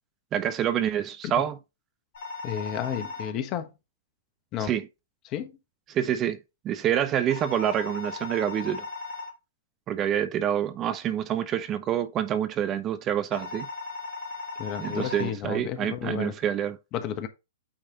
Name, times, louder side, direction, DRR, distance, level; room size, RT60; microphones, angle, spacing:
voice 1, 0.3-1.6 4.6-4.9 5.9-6.4 6.6-8.8 9.9-13.7 14.8-16.8, right 10 dB, 30° right, 0.7 m, -27 dB
sound 1, 2.1-3.3 7.3-9.3 13.3-15.3, left 3 dB, 55° left, 2.3 m, -37 dB
voice 2, 2.4-3.7 4.5-4.7 5.2-5.5 14.6-16.3 16.9-17.3, left 9 dB, 35° left, 1.2 m, -32 dB
8.8 x 3.3 x 3.8 m
hypercardioid pair, 120°, 0 cm